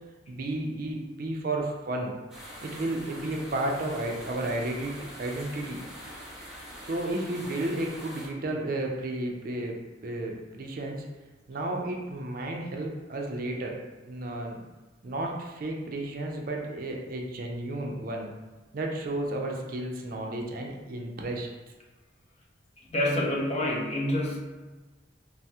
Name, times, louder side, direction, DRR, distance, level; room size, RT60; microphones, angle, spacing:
voice 1, 0.3-2.1 2.6-5.8 6.8-9.7 10.0-11.1 11.5-13.8 14.0-14.6 15.0-18.3 18.7-21.5, right 1 dB, 50° right, 0 dB, 0.4 m, -32 dB
sound 1, 2.3-8.3, equal, 5° right, 0.7 m, -44 dB
voice 2, 22.9-24.5, left 1 dB, 35° left, -2 dB, 0.5 m, -27 dB
3.3 x 2.0 x 2.7 m, 1.2 s
head